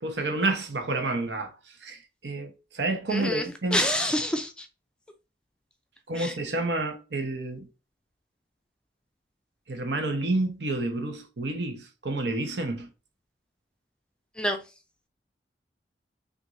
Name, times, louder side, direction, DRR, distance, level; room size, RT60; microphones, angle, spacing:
voice 1, 0.0-1.5 1.8-2.0 2.2-3.8 6.1-7.6 9.7-12.9, right 2 dB, 80° right, 0.9 m, -29 dB
voice 2, 3.1-4.5 6.2-6.3 14.4-14.6, equal, 5° left, 0.4 m, -27 dB
5.9 x 2.6 x 2.5 m
head